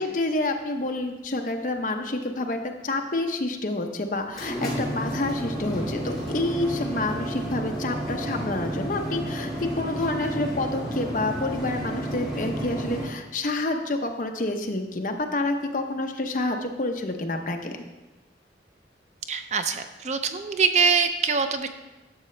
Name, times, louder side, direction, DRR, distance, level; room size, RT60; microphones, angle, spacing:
voice 1, 0.0-17.8, left 2 dB, 45° left, 4 dB, 0.8 m, -28 dB
sound 1, 4.1-13.1, right 1 dB, ahead, 2.9 m, -31 dB
voice 2, 19.3-21.7, right 5 dB, 40° right, 8 dB, 0.5 m, -24 dB
11.5 x 6.5 x 3.3 m, 1.1 s
head